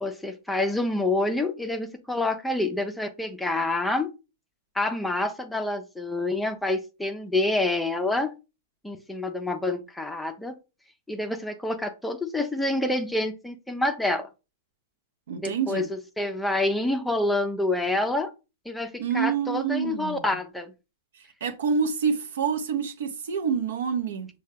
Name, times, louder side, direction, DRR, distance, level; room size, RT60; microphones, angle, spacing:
voice 1, 0.0-4.1 4.7-8.3 8.8-10.5 11.1-14.3 15.3-18.3 18.7-20.7, left 2 dB, 5° left, 0.6 m, -27 dB
voice 2, 15.3-15.9 19.0-20.2 21.4-24.3, right 6 dB, 65° right, 0.8 m, -27 dB
6.3 x 2.3 x 3.4 m
hypercardioid pair, 115°, 0 cm